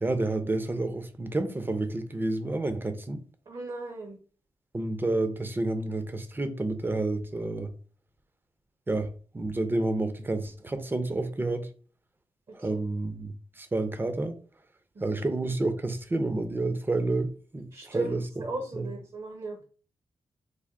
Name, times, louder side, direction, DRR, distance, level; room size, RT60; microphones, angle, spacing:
voice 1, 0.0-3.2 4.7-7.7 8.9-11.7 12.5-14.4 15.0-18.2 18.7-18.9, right 2 dB, 20° right, 0.5 m, -30 dB
voice 2, 3.5-4.2 12.5-12.8 14.9-15.2 17.7-19.6, right 2 dB, 50° right, 0.8 m, -37 dB
3.4 x 2.2 x 3.6 m
cardioid pair, 80°, 10 cm